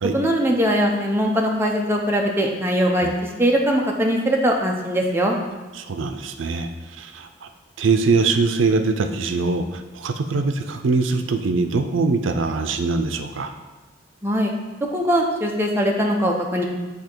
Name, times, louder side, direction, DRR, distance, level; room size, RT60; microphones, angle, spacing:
voice 1, 0.1-5.4 14.2-14.5 14.9-16.6, equal, 10° right, 0 dB, 0.6 m, -21 dB
voice 2, 5.7-7.5 7.8-13.5, right 4 dB, 85° right, 7 dB, 0.4 m, -22 dB
8.3 x 2.8 x 4.4 m, 1.2 s
head